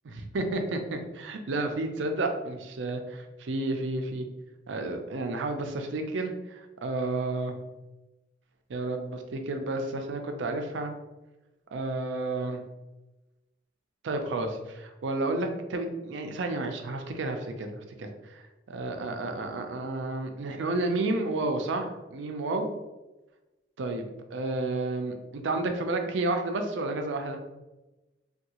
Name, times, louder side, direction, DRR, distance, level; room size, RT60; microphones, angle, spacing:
voice 1, 0.0-4.2 4.7-7.5 8.7-10.9 11.7-12.6 14.0-22.7 23.8-25.2 25.4-27.4, right 2 dB, 75° right, 5 dB, 0.5 m, -31 dB
3.5 x 2.3 x 2.8 m, 1.1 s
head